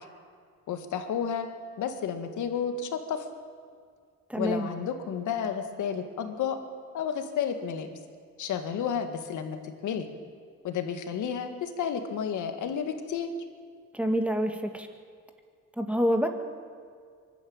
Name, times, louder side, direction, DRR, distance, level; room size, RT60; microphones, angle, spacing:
voice 1, 0.7-1.5 1.8-3.3 4.4-6.6 6.9-7.9 8.4-9.6 9.8-10.1 10.6-13.3, left 7 dB, 80° left, 7 dB, 2.1 m, -31 dB
voice 2, 4.3-4.7 13.9-14.9 15.8-16.3, equal, 5° right, 4 dB, 2.1 m, -27 dB
24.0 x 12.5 x 8.8 m, 2.1 s
cardioid pair, 90°, 30 cm